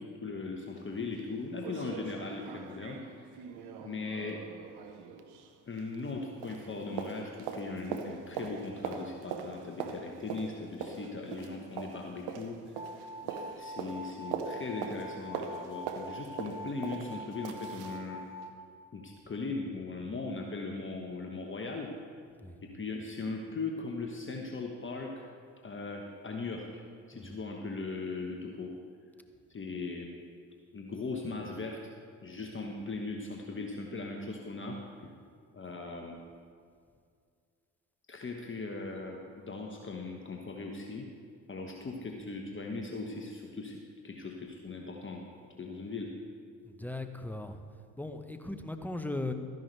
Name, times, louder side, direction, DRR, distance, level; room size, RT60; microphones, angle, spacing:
voice 1, 0.0-3.0 3.3-3.4 3.8-4.4 5.7-12.6 13.2-18.2 18.9-21.9 22.6-25.3 25.6-26.8 27.1-28.7 29.5-30.1 30.7-31.9 32.2-34.8 35.5-36.2 38.1-41.1 41.5-45.2 45.6-46.1, left 3 dB, 30° left, 1 dB, 1.2 m, -39 dB
sound 1, 0.8-0.9 1.2-1.3 1.6-6.2 6.4-18.0 18.4-18.5, right 6 dB, 70° right, 1.0 m, -42 dB
sound 2, 12.8-18.5, equal, 10° right, 2.4 m, -44 dB
voice 2, 46.6-47.6 48.0-49.3, left 2 dB, 5° left, 7 dB, 1.0 m, -38 dB
13.0 x 10.5 x 3.4 m, 2.2 s
hypercardioid pair, 50°, 40 cm